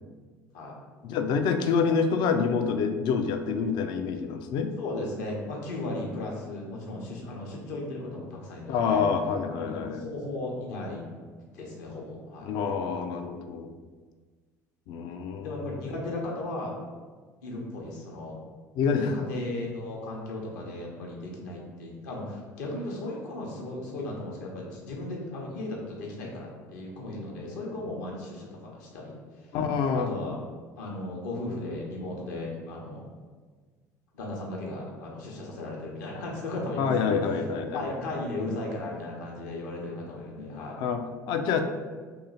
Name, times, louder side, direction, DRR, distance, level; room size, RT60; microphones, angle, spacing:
voice 1, 1.0-4.7 8.7-10.1 12.4-13.7 14.9-15.7 18.8-19.2 29.5-30.1 36.8-37.8 40.4-41.6, left 5 dB, 55° left, 7 dB, 0.4 m, -27 dB
voice 2, 4.8-9.1 9.6-11.1 11.5-12.5 15.4-16.7 17.4-18.4 19.0-29.5 29.9-30.4 30.8-33.1 34.1-37.2 37.7-40.8, left 2 dB, 70° left, -1 dB, 0.9 m, -36 dB
3.0 x 2.7 x 4.0 m, 1.5 s
figure-of-eight pair, 60°, 9 cm